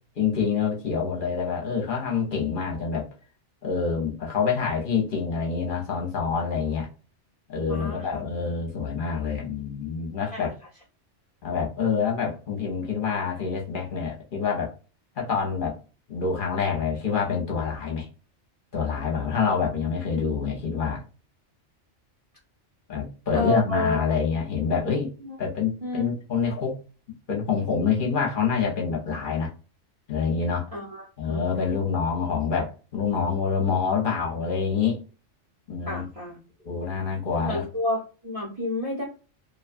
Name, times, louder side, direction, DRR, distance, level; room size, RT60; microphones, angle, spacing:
voice 1, 0.2-3.1 3.6-6.9 7.5-10.5 11.4-14.7 15.2-15.8 16.1-18.1 18.7-21.0 22.9-25.1 25.4-26.8 27.3-29.5 30.1-30.7 31.2-35.0 35.7-36.1 36.6-37.6, left 6 dB, 50° left, 0.9 m, -26 dB
voice 2, 7.7-8.2 10.3-10.5 23.3-24.0 25.2-25.4 25.8-26.1 30.7-31.4 35.9-36.4 37.3-39.0, left 2 dB, 35° right, 0.7 m, -30 dB
2.6 x 2.2 x 2.5 m
omnidirectional pair, 1.2 m